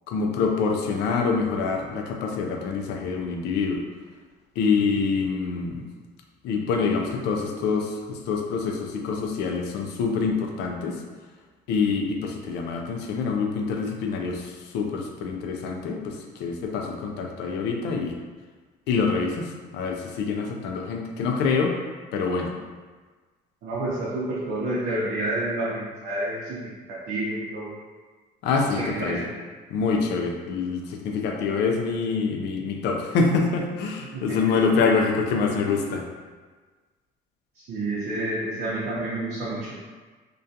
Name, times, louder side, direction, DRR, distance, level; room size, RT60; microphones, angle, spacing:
voice 1, 0.1-3.8 4.6-5.8 6.4-11.0 11.7-18.1 18.9-21.7 22.1-22.5 28.4-29.2 29.7-36.0, left 4 dB, 85° left, 2 dB, 0.4 m, -26 dB
voice 2, 23.6-26.7 27.1-27.7 28.7-29.3 34.0-34.6 37.6-39.7, right 1 dB, 75° right, -8 dB, 0.6 m, -29 dB
2.3 x 2.2 x 2.7 m, 1.4 s
cardioid pair, 110°, 17 cm